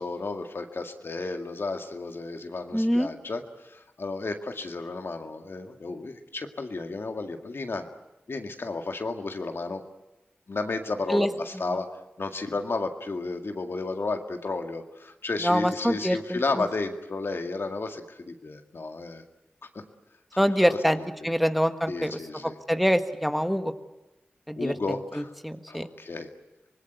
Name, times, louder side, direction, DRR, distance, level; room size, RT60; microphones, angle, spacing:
voice 1, 0.0-7.9 8.3-9.8 10.5-11.9 12.2-19.2 20.4-21.3 21.9-22.6 24.6-25.3 25.7-26.3, left 3 dB, 70° left, 5 dB, 2.0 m, -33 dB
voice 2, 2.7-3.1 11.1-11.3 15.4-16.4 20.4-21.0 21.2-22.1 22.7-23.7 24.5-24.7 25.4-25.8, equal, ahead, 8 dB, 1.6 m, -24 dB
25.5 x 20.0 x 9.3 m, 1.0 s
cardioid pair, 45°, 4 cm